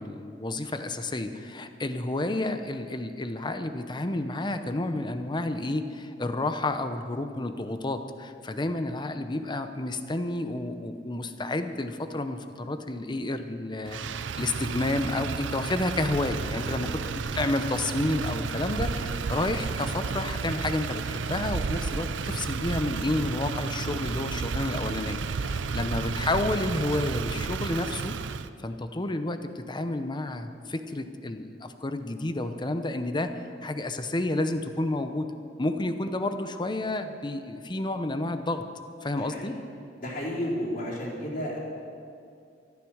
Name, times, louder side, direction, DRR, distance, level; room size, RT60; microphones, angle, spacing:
voice 1, 0.0-14.0 14.4-16.9 17.3-28.1 28.6-35.3 35.6-38.6 39.0-39.6, left 2 dB, 25° left, 9 dB, 0.8 m, -30 dB
Motor vehicle (road), 13.9-28.5, right 5 dB, 85° right, 0.5 m, -32 dB
voice 2, 16.6-16.9 19.0-19.1 25.4-25.8 39.2-39.5 40.0-41.6, equal, 50° left, -6 dB, 4.1 m, -33 dB
14.0 x 12.0 x 6.4 m, 2.5 s
head